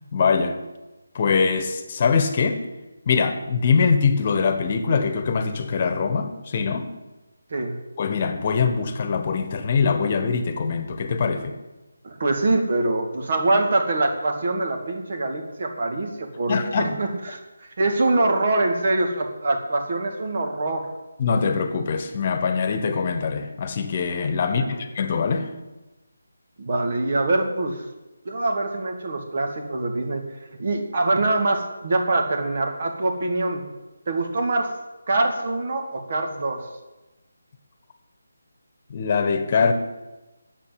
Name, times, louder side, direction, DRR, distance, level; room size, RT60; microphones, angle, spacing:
voice 1, 0.1-0.6 1.1-2.6 3.1-6.9 8.0-11.5 16.5-16.9 21.2-25.5 38.9-39.7, left 5 dB, 35° left, 8 dB, 1.3 m, -23 dB
voice 2, 12.0-20.9 24.4-24.8 26.6-27.8 28.3-30.2 30.6-33.7 34.1-34.7 35.1-36.6, right 2 dB, 50° right, 4 dB, 2.2 m, -24 dB
9.9 x 7.6 x 9.1 m, 1.1 s
figure-of-eight pair, 155°, 0 cm